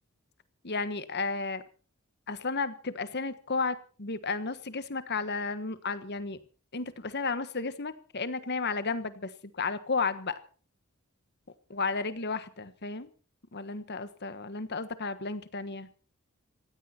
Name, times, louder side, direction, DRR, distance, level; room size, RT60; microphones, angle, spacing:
voice 1, 0.6-1.6 2.3-6.4 6.7-10.4 11.7-13.1 13.5-15.9, left 4 dB, 50° left, 13 dB, 1.4 m, -33 dB
19.5 x 16.0 x 4.4 m, 0.40 s
head